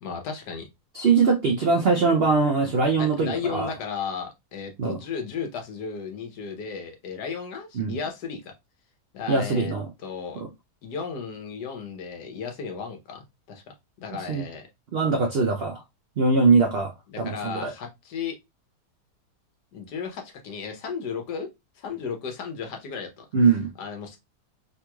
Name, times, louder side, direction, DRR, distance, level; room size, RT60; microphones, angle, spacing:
voice 1, 0.0-0.7 3.0-8.5 9.1-9.8 10.0-10.4 10.8-13.6 14.0-14.7 17.1-18.4 19.7-21.5 21.8-23.3 23.8-24.2, left 6 dB, 80° left, 1.4 m, -34 dB
voice 2, 0.9-3.7 4.8-5.0 7.7-8.0 9.3-9.9 10.4-10.5 14.1-14.5 14.9-15.8 16.2-16.9 17.2-17.7 23.3-23.7, right 4 dB, 90° right, 0.5 m, -22 dB
3.6 x 3.0 x 2.2 m
omnidirectional pair, 1.7 m